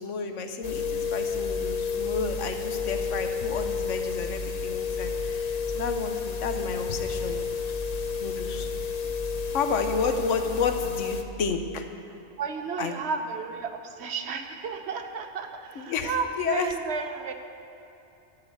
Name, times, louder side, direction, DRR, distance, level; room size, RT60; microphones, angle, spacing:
voice 1, 0.0-7.4 8.2-8.7 9.5-11.8 12.8-13.0 15.7-16.7, left 5 dB, 80° left, 6 dB, 1.2 m, -31 dB
sound 1, 0.6-11.2, left 5 dB, 45° left, 0.6 m, -31 dB
voice 2, 12.4-17.3, right 5 dB, 65° right, 6 dB, 1.0 m, -33 dB
12.0 x 5.5 x 8.2 m, 2.8 s
omnidirectional pair, 1.3 m